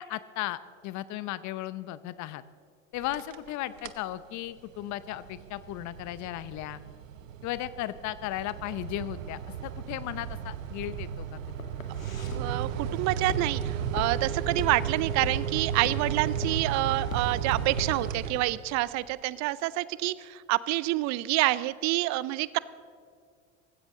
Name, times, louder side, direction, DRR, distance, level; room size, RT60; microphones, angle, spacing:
voice 1, 0.0-2.4 2.9-6.8 7.4-11.4, left 14 dB, 45° left, 16 dB, 0.8 m, -36 dB
sound 1, 3.0-3.5 3.8-4.1 4.6-18.9, right 8 dB, 75° right, 1.0 m, -34 dB
Walk footsteps, 10.5-18.5, left 5 dB, 90° left, 1.7 m, -39 dB
voice 2, 12.2-22.6, right 18 dB, 45° right, 19 dB, 0.5 m, -28 dB
18.0 x 16.0 x 3.8 m, 2.2 s
hypercardioid pair, 75°, 39 cm